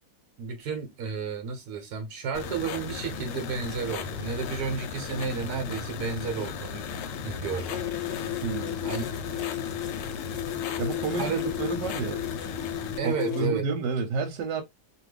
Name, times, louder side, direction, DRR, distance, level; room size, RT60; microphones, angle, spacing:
voice 1, 0.4-6.9 7.2-7.8 8.8-9.1 11.2-11.5 13.0-13.7, right 6 dB, 70° right, 1.2 m, -32 dB
sound 1, 2.3-13.0, left 6 dB, 90° left, 1.3 m, -36 dB
sound 2, 7.7-13.5, left 11 dB, 55° left, 0.8 m, -34 dB
voice 2, 8.4-8.8 10.8-11.3 11.6-12.2 13.0-14.6, right 4 dB, 85° right, 1.3 m, -30 dB
2.9 x 2.5 x 3.1 m
omnidirectional pair, 1.9 m